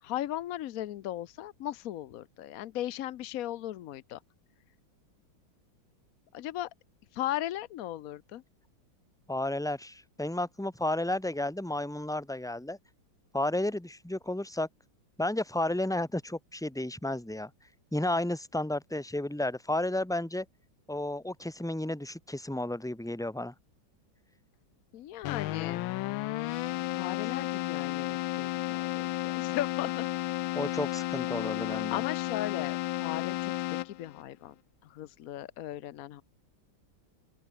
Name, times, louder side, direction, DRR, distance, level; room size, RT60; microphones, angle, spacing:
voice 1, 0.0-4.2 6.3-6.7 7.1-8.4 24.9-25.8 26.9-30.1 31.7-33.5 33.8-34.5 34.8-36.2, left 13 dB, 65° left, 0.9 m, -37 dB
voice 2, 9.3-12.8 13.3-14.7 15.2-17.5 17.9-20.4 20.9-23.5 30.5-32.0, left 1 dB, ahead, 0.8 m, -32 dB
Keyboard (musical), 25.2-34.2, left 17 dB, 85° left, 1.4 m, -33 dB
open air
omnidirectional pair, 2.1 m